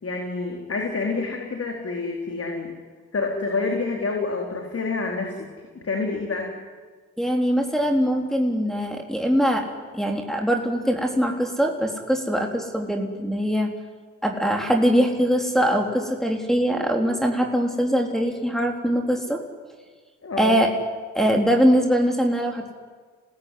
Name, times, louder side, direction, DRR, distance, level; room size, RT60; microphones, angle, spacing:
voice 1, 0.0-2.7 3.1-6.5 20.2-20.6, left 3 dB, 45° left, 2 dB, 4.0 m, -28 dB
voice 2, 7.2-9.7 9.9-13.7 14.2-19.4 20.4-20.7 21.1-22.7, equal, ahead, 1 dB, 3.8 m, -22 dB
26.0 x 19.0 x 9.8 m, 1.5 s
supercardioid pair, 55°, 32 cm